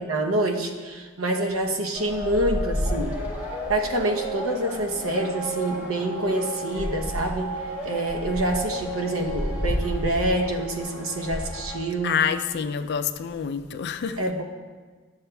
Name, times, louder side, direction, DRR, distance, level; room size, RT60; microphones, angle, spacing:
voice 1, 0.0-3.2 3.7-7.5 7.8-12.2 14.2-14.4, right 1 dB, 80° right, 3 dB, 0.8 m, -26 dB
sound 1, 1.9-11.8, equal, 10° right, 1.4 m, -31 dB
voice 2, 12.0-14.2, left 7 dB, 55° left, 9 dB, 0.4 m, -27 dB
12.0 x 7.2 x 2.2 m, 1.5 s
head